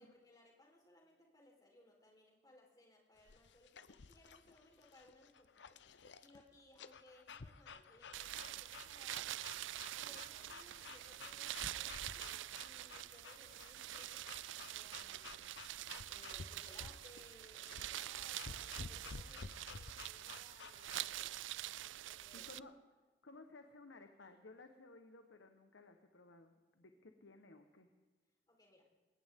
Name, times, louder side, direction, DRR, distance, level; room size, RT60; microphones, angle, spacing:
voice 1, 0.0-5.8 6.2-9.3 9.9-15.5 16.1-21.4 22.0-22.5 28.5-29.0, left 1 dB, 20° left, 0 dB, 4.2 m, -65 dB
sound 1, 3.2-21.2, left 4 dB, 70° left, 0.7 m, -54 dB
sound 2, 8.1-22.6, right 14 dB, 85° right, 0.4 m, -46 dB
voice 2, 22.3-22.7 23.2-27.9, left 3 dB, 85° left, 6 dB, 1.3 m, -58 dB
20.5 x 18.5 x 3.7 m, 1.3 s
head